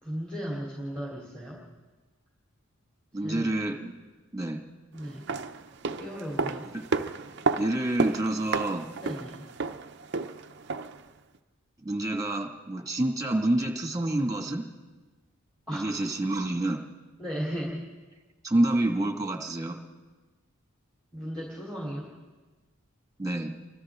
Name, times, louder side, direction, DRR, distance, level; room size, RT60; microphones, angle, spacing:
voice 1, 0.0-1.6 3.2-3.5 4.9-5.3 6.0-6.7 9.0-9.5 15.7-16.1 17.2-17.9 21.1-22.1, equal, 5° left, -5 dB, 3.2 m, -36 dB
voice 2, 3.1-4.0 4.3-4.6 6.7-6.8 7.6-8.9 11.8-14.7 15.7-16.8 18.4-19.8 23.2-23.5, right 1 dB, 15° right, 3 dB, 1.9 m, -28 dB
sound 1, 5.1-11.1 11.3-11.4, right 4 dB, 50° right, 0.7 m, -32 dB
30.0 x 24.5 x 3.7 m, 1.3 s
head